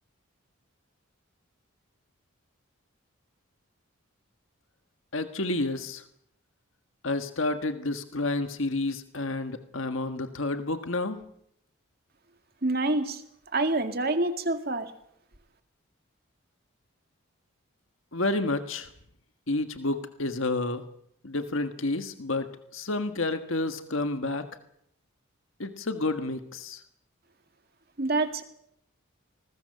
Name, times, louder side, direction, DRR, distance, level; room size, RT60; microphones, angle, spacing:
voice 1, 5.1-6.0 7.0-11.2 18.1-18.9 19.5-20.8 21.2-24.4 25.6-26.8, left 2 dB, 65° left, 8 dB, 1.6 m, -30 dB
voice 2, 12.6-13.2 13.5-14.9 28.0-28.4, right 2 dB, 45° right, 7 dB, 2.2 m, -26 dB
27.0 x 20.5 x 6.9 m, 0.73 s
head